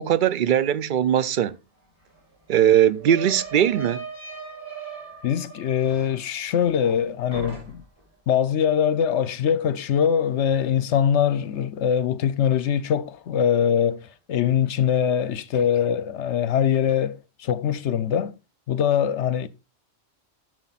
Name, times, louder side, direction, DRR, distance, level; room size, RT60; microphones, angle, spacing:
voice 1, 0.0-1.6 2.5-4.0, right 10 dB, 55° right, 0.6 m, -20 dB
sound 1, 1.4-1.5 1.8-7.0 7.3-8.1, right 5 dB, 10° right, 6.6 m, -39 dB
voice 2, 5.2-7.8 8.3-18.3 18.7-19.5, left 8 dB, 70° left, 0.9 m, -23 dB
11.5 x 6.5 x 4.0 m
omnidirectional pair, 1.3 m